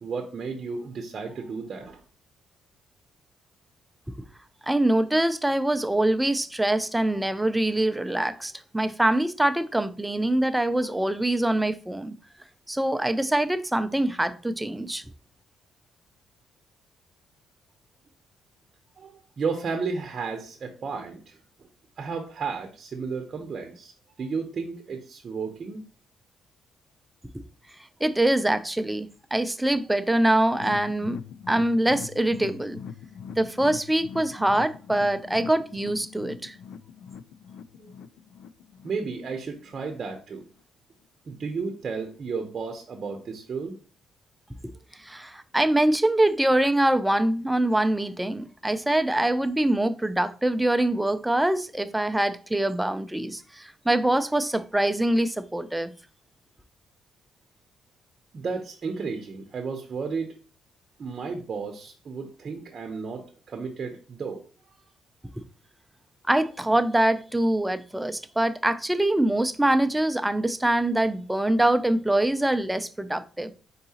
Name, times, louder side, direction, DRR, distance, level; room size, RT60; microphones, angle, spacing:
voice 1, 0.0-2.0 19.0-21.4 22.0-23.9 24.2-25.8 37.8-37.9 38.8-40.4 41.3-43.8 58.3-60.3 61.0-64.4, right 5 dB, 50° right, 0.7 m, -33 dB
voice 2, 4.7-12.1 12.7-15.0 28.0-31.2 31.5-32.8 33.4-36.6 45.0-55.9 66.3-73.5, right 1 dB, 10° right, 0.4 m, -24 dB
sound 1, 30.5-39.8 40.1-40.2 40.6-40.7, left 7 dB, 80° left, 0.3 m, -42 dB
4.6 x 3.9 x 2.8 m
cardioid pair, 90°, 0 cm